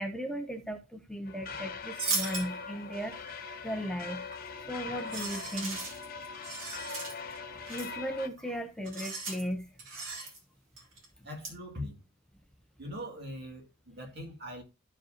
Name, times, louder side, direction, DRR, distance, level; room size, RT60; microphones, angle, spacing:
voice 1, 0.0-4.2 4.5-5.8 7.7-9.7 11.2-11.3, equal, 5° left, 0.7 m, -37 dB
sound 1, 1.3-8.3, left 4 dB, 45° left, 0.9 m, -42 dB
sound 2, 1.9-2.5 4.3-4.6 5.0-7.4 7.7-7.9 8.4-8.6 8.9-9.4 9.8-10.4 10.8-11.1 11.4-11.5, right 3 dB, 70° right, 3.0 m, -37 dB
voice 2, 11.2-12.0 12.8-14.6, equal, 55° right, 2.5 m, -41 dB
13.5 x 5.1 x 2.9 m
head